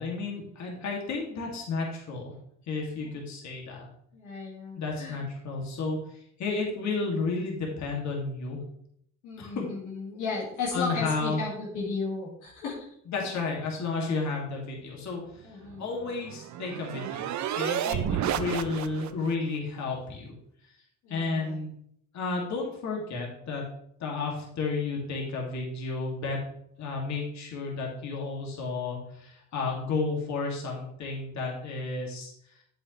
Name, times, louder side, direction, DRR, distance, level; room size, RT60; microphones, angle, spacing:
voice 1, 0.0-2.3 2.7-3.8 4.8-6.0 6.4-8.6 9.4-9.6 10.7-11.4 13.1-15.2 15.8-17.2 17.5-20.3 21.1-21.7 22.1-23.6 24.0-26.4 26.8-32.3, left 4 dB, 65° left, -1 dB, 2.4 m, -32 dB
voice 2, 4.1-5.2 9.2-12.8 15.4-15.8 17.9-18.4 21.0-21.6, left 4 dB, 90° left, -4 dB, 2.2 m, -35 dB
sound 1, 15.7-19.3, right 10 dB, 65° right, 0.6 m, -31 dB
8.4 x 8.0 x 3.2 m, 0.70 s
cardioid pair, 90°, 30 cm